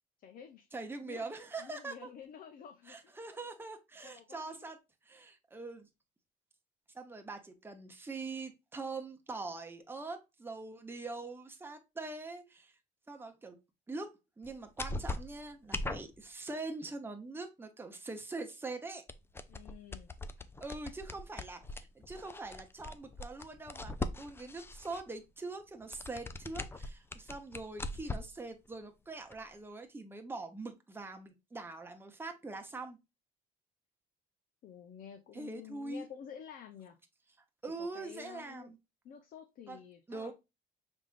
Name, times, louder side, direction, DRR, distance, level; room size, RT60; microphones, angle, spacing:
voice 1, 0.2-0.7 1.0-1.3 1.6-3.2 4.0-4.7 19.5-20.1 34.6-37.0 37.6-38.7 39.0-40.3, left 8 dB, 55° left, 0.6 m, -50 dB
voice 2, 0.7-2.1 2.9-4.8 5.0-5.9 6.9-12.7 13.1-13.6 13.9-19.0 20.6-33.0 35.3-36.1 37.6-38.8 39.7-39.8 40.1-40.3, right 3 dB, 15° right, 0.8 m, -43 dB
sound 1, 14.4-14.5 14.8-16.2 19.1-25.1 25.8-28.4 28.7-28.8 29.3-29.4, left 2 dB, 15° left, 0.4 m, -41 dB
5.0 x 3.6 x 2.4 m
cardioid pair, 110°, 17 cm